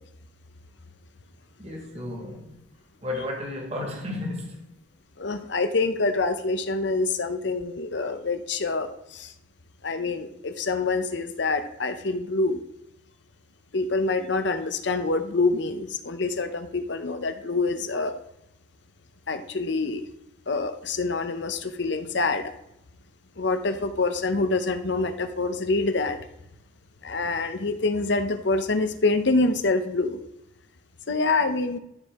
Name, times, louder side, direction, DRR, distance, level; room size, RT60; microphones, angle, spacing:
voice 1, 1.6-2.6 3.0-4.7, left 2 dB, 30° right, 1.9 m, -33 dB
voice 2, 5.2-9.3 9.8-12.6 13.7-18.1 19.3-20.1 20.5-22.5 23.4-26.2 27.0-30.2 31.1-31.8, left 3 dB, 60° left, 0.8 m, -26 dB
12.5 x 4.5 x 3.6 m
head